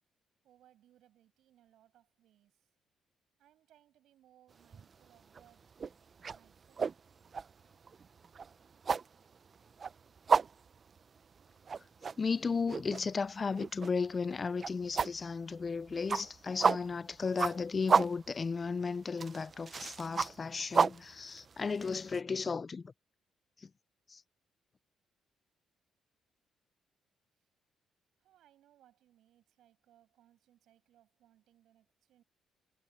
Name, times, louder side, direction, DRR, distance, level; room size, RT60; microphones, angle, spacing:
voice 1, 0.4-2.7 3.4-5.6 6.3-6.9 28.2-32.2, right 12 dB, 80° right, 6.4 m, -67 dB
sound 1, 4.6-4.9 5.3-22.2, right 5 dB, 40° right, 0.7 m, -33 dB
voice 2, 12.2-22.8 24.1-24.2, left 5 dB, 35° left, 0.4 m, -34 dB
cardioid pair, 90°, 0 cm